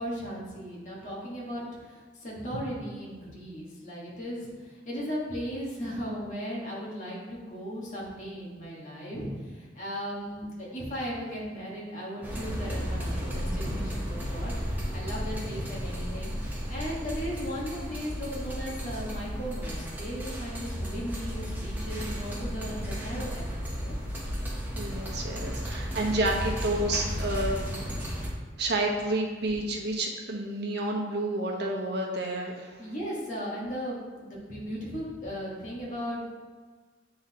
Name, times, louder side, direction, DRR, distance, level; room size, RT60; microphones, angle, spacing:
voice 1, 0.0-23.9 25.1-25.8 32.8-36.3, equal, 40° left, -5 dB, 1.5 m, -37 dB
sound 1, 12.2-28.3, equal, 10° right, 0.9 m, -34 dB
voice 2, 24.8-27.9 28.6-32.8, right 1 dB, 60° right, 0 dB, 0.9 m, -30 dB
8.4 x 3.9 x 2.9 m, 1.4 s
head